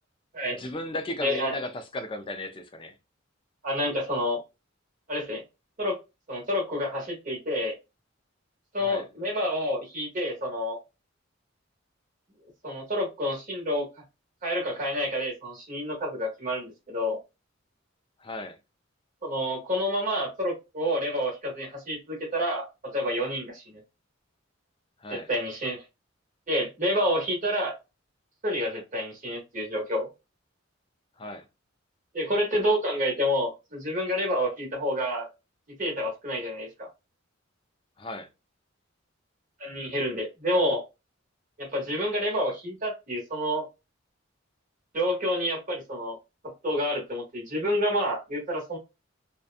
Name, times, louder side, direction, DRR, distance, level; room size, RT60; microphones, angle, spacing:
voice 1, 0.6-2.9 8.8-9.0 18.2-18.6 25.0-25.3 31.2-31.4 38.0-38.3, left 1 dB, 25° left, 0.4 m, -36 dB
voice 2, 1.2-1.6 3.6-4.4 5.1-5.4 5.8-6.0 6.3-7.7 8.7-10.8 12.6-13.8 14.4-17.2 19.2-22.7 22.9-23.8 25.1-25.8 26.5-27.7 28.4-30.1 32.1-35.3 35.8-36.9 39.6-40.8 41.6-43.6 44.9-46.2 46.6-48.8, equal, 40° right, 1.1 m, -28 dB
2.7 x 2.2 x 2.4 m
head